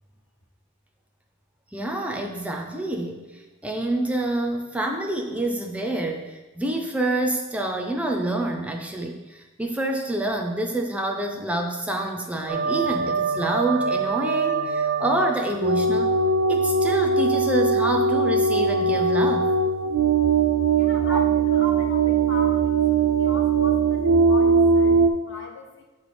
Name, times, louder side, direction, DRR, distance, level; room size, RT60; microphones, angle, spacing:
voice 1, 1.7-16.2 16.5-19.5 21.0-21.2, right 1 dB, 5° right, 3 dB, 0.4 m, -27 dB
sound 1, 12.5-25.1, right 4 dB, 80° right, 0.4 m, -21 dB
voice 2, 20.8-25.8, left 1 dB, 65° left, 2 dB, 0.8 m, -38 dB
7.7 x 3.2 x 4.1 m, 1.2 s
head